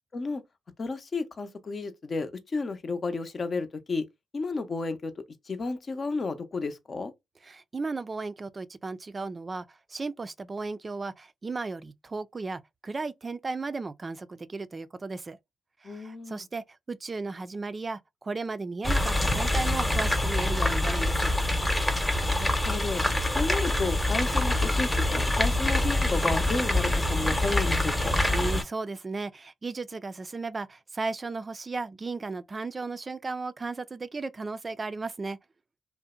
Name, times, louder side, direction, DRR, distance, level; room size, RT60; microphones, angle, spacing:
voice 1, 0.8-4.1 4.3-5.1 5.5-7.1 15.8-16.5 22.2-23.0 23.3-28.1, left 3 dB, 50° left, 0.6 m, -32 dB
voice 2, 7.4-15.4 15.8-21.3 28.3-35.4, right 3 dB, 40° right, 0.3 m, -35 dB
sound 1, 18.8-28.6, left 1 dB, 10° left, 0.8 m, -25 dB
2.6 x 2.0 x 2.4 m
hypercardioid pair, 45°, 0 cm